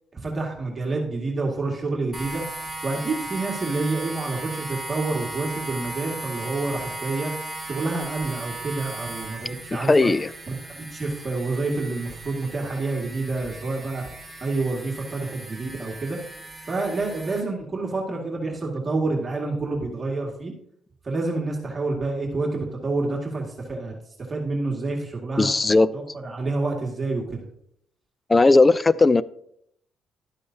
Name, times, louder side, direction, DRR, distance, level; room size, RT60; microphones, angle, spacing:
voice 1, 0.2-2.4 2.8-7.3 7.6-10.1 10.5-14.0 14.4-16.2 16.7-20.5 21.0-24.0 24.3-25.5 25.9-27.5, right 3 dB, 30° right, -1 dB, 2.1 m, -28 dB
sound 1, 2.1-17.4, right 2 dB, 5° right, 2.3 m, -37 dB
voice 2, 9.7-10.3 25.4-25.9 28.3-29.2, left 3 dB, 25° left, 18 dB, 0.4 m, -17 dB
12.0 x 8.5 x 2.8 m, 0.71 s
cardioid pair, 90°, 0 cm